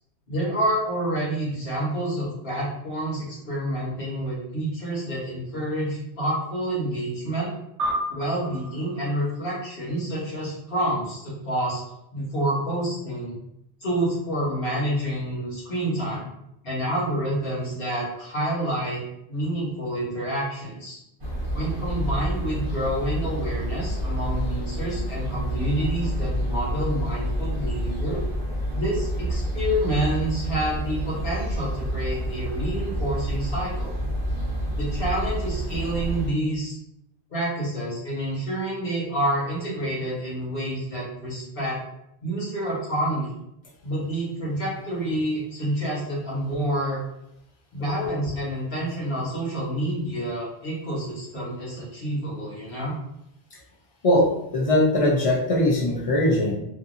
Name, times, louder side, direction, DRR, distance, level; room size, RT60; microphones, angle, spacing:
voice 1, 0.3-7.5 8.1-11.8 12.1-13.4 13.8-16.3 16.6-19.0 19.3-21.0 21.5-28.2 28.7-33.9 34.8-36.8 37.3-41.8 42.2-43.3 43.8-47.0 47.7-52.9, right 1 dB, 55° left, -6 dB, 1.3 m, -28 dB
sound 1, 7.8-10.5, equal, 85° right, 0.9 m, -33 dB
sound 2, 21.2-36.3, right 1 dB, 35° right, 0.7 m, -28 dB
voice 2, 54.0-56.6, left 1 dB, 40° left, -3 dB, 0.6 m, -21 dB
2.7 x 2.5 x 2.5 m, 0.81 s
omnidirectional pair, 1.2 m